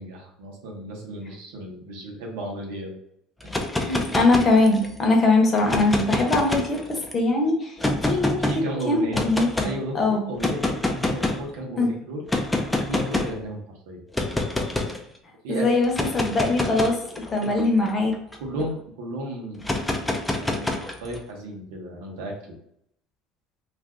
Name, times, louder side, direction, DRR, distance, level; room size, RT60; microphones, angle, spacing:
voice 1, 0.0-2.9 8.5-9.2 9.6-12.2 12.9-14.0 15.4-15.7 17.4-17.5 18.4-19.6 20.3-22.6, right 1 dB, 85° right, 0 dB, 0.9 m, -34 dB
sound 1, 3.4-5.0 5.6-7.1 7.8-8.6 9.1-9.7 10.4-11.5 12.3-13.4 14.1-15.0 15.8-18.7 19.6-21.2, left 2 dB, 10° left, 0.5 m, -27 dB
voice 2, 3.8-9.7 9.9-10.2 11.8-11.9 15.5-17.0 17.3-18.2, left 2 dB, 35° left, 1 dB, 0.9 m, -22 dB
2.5 x 2.4 x 3.4 m, 0.73 s
supercardioid pair, 95°, 0 cm